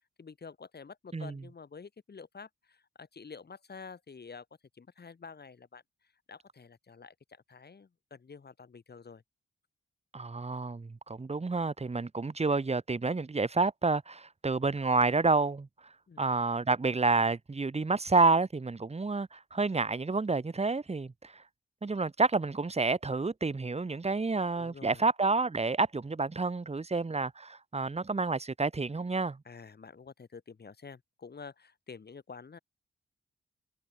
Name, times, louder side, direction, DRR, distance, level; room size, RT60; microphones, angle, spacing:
voice 1, 0.2-4.5 4.7-9.2 16.1-16.4 24.6-25.1 29.4-32.6, left 5 dB, 50° left, 6.5 m, -49 dB
voice 2, 10.1-15.7 16.2-21.4 21.8-29.4, right 3 dB, 30° right, 1.7 m, -29 dB
supercardioid pair, 50°, 21 cm